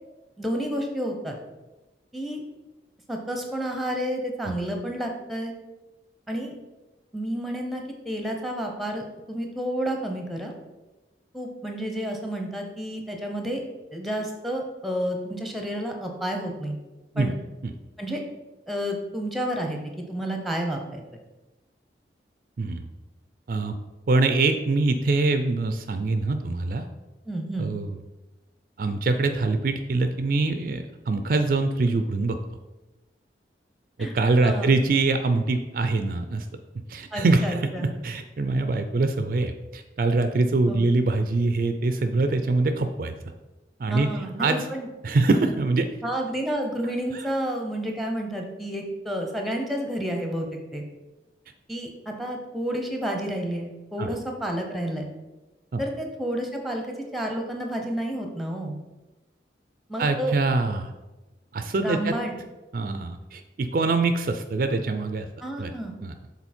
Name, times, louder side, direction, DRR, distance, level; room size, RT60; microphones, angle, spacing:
voice 1, 0.4-1.4 2.1-2.4 3.1-5.5 6.3-6.5 7.1-10.5 11.3-13.6 13.9-16.8 17.2-17.3 18.0-18.2 18.7-21.0 27.3-27.7 34.0-34.2 34.4-34.7 37.1-37.9 40.7-40.9 43.9-44.9 46.0-50.8 51.7-55.1 55.8-58.8 59.9-60.3 61.8-62.3 65.4-65.9, right 1 dB, ahead, 2 dB, 0.8 m, -30 dB
voice 2, 24.1-26.8 27.6-28.0 28.8-32.4 34.0-36.5 36.9-43.1 43.8-44.1 44.4-44.6 45.0-45.9 47.1-47.2 54.0-54.1 55.7-55.8 60.0-60.9 61.5-62.1 62.7-65.3 65.6-65.7 66.0-66.1, right 3 dB, 50° right, 8 dB, 0.4 m, -24 dB
7.0 x 4.0 x 4.3 m, 1.1 s
head